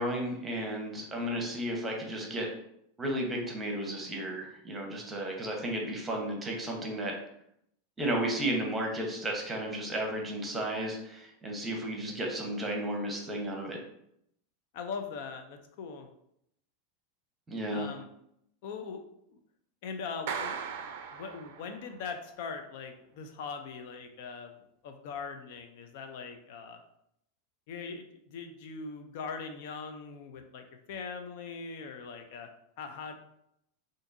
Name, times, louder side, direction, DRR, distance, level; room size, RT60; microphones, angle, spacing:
voice 1, 0.0-2.5 3.0-7.1 8.0-13.8 17.5-17.9, right 1 dB, 15° right, 0 dB, 0.8 m, -33 dB
voice 2, 14.7-16.1 17.7-18.1 18.6-19.0 19.3-19.4 19.8-24.5 24.8-26.8 27.7-32.5 32.8-33.1, left 5 dB, 65° left, 6 dB, 0.4 m, -41 dB
Clapping, 20.3-22.0, right 7 dB, 70° right, 0.4 m, -38 dB
3.8 x 2.5 x 2.5 m, 0.76 s
hypercardioid pair, 110°, 0 cm